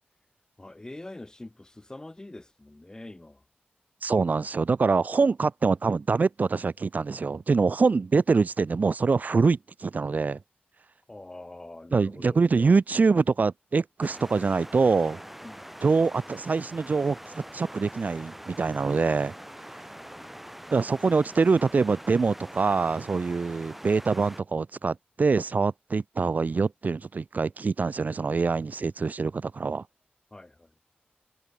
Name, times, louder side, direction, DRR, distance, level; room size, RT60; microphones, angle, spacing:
voice 1, 0.6-3.4 11.1-12.4 15.4-15.7 20.2-20.3 30.3-30.7, left 2 dB, 20° left, 1.1 m, -44 dB
voice 2, 4.0-10.4 11.9-15.2 15.8-17.2 17.5-19.3 20.7-29.8, right 4 dB, 50° right, 0.5 m, -24 dB
sound 1, 14.0-24.4, equal, 5° right, 2.6 m, -44 dB
wide cardioid pair, 120°, 4 cm